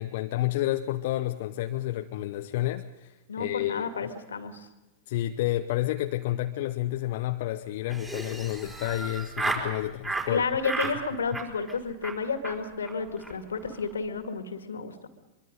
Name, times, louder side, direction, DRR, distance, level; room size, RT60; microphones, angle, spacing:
voice 1, 0.0-4.1 5.1-10.4, left 14 dB, 50° left, 6 dB, 0.8 m, -30 dB
voice 2, 3.3-4.7 10.3-14.9, left 4 dB, 70° left, 8 dB, 2.1 m, -31 dB
Laughter, 7.9-9.7 10.0-10.3 10.6-11.0 11.3-11.7 12.0-12.2 12.4-12.6 12.8-12.9 13.2-13.3 13.6-13.9, right 2 dB, 15° right, 4.5 m, -33 dB
24.0 x 23.5 x 5.3 m, 1.0 s
figure-of-eight pair, 95°, 0 cm